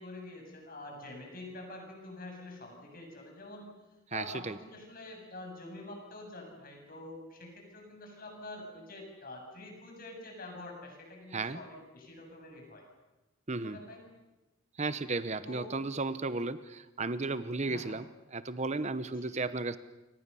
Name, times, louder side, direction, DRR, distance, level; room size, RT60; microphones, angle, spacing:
voice 1, 0.0-3.7 4.1-12.8 13.6-14.0 15.4-15.7 17.6-17.9 19.0-19.3, left 2 dB, 45° left, 2 dB, 7.8 m, -46 dB
voice 2, 4.1-4.6 11.3-11.6 13.5-13.8 14.8-18.0 18.3-19.8, right 3 dB, 35° right, 13 dB, 0.8 m, -34 dB
28.5 x 24.0 x 7.0 m, 1.0 s
head